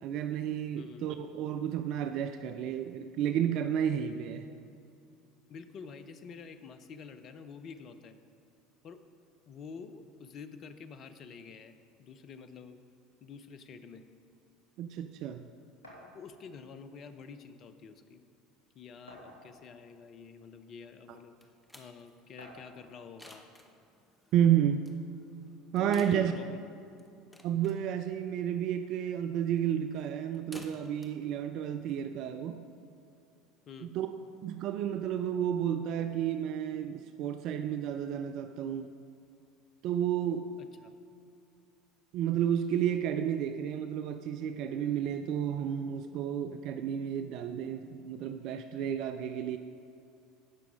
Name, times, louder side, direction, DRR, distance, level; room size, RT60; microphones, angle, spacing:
voice 1, 0.0-4.5 14.8-15.5 24.3-24.9 25.7-26.3 27.4-32.6 33.9-34.1 34.4-38.9 39.8-40.5 42.1-49.6, right 9 dB, 50° right, 9 dB, 0.4 m, -31 dB
voice 2, 0.7-1.1 5.5-8.2 8.8-9.2 9.5-11.7 12.0-12.8 13.2-14.0 16.1-18.2 18.7-21.3 21.7-23.5 25.8-26.6 33.7-33.9 40.6-40.9, left 5 dB, 40° left, 10 dB, 0.6 m, -47 dB
sound 1, 15.8-16.1 17.3-17.4 17.8-17.9 19.1-19.7 20.6-20.7 22.4-22.8, equal, 75° left, 2.3 m, -51 dB
sound 2, 21.1-32.5, left 1 dB, 10° left, 1.0 m, -56 dB
16.5 x 5.9 x 3.6 m, 2.5 s
figure-of-eight pair, 70°, 0 cm